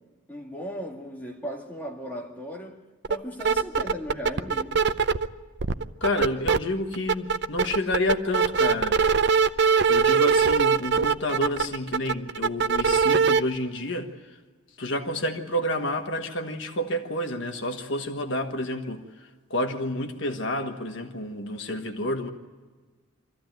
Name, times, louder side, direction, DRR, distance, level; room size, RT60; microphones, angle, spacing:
voice 1, 0.3-2.8 3.1-4.8, equal, 10° left, 2.2 m, -36 dB
sound 1, 3.0-3.2 3.4-5.3 5.6-6.6 6.9-13.4, right 5 dB, 55° right, 0.6 m, -21 dB
voice 2, 6.0-9.0 9.6-14.4 14.8-22.3, left 1 dB, 60° left, 1.4 m, -29 dB
24.5 x 15.0 x 9.2 m
head